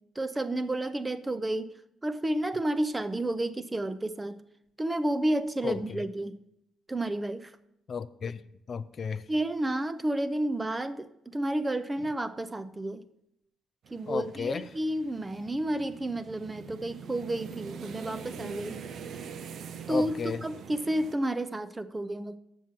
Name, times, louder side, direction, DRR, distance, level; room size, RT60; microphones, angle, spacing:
voice 1, 0.2-1.7 2.0-4.4 4.8-6.4 6.9-7.5 9.3-13.0 13.9-18.8 19.9-22.4, right 1 dB, 20° right, 13 dB, 0.6 m, -31 dB
voice 2, 7.9-8.4 8.7-9.3 14.1-14.6 19.9-20.4, left 6 dB, 50° left, 13 dB, 0.4 m, -33 dB
sound 1, 13.8-21.1, right 7 dB, 65° right, 0.5 m, -43 dB
7.1 x 6.2 x 7.4 m, 0.79 s
cardioid pair, 90°, 0 cm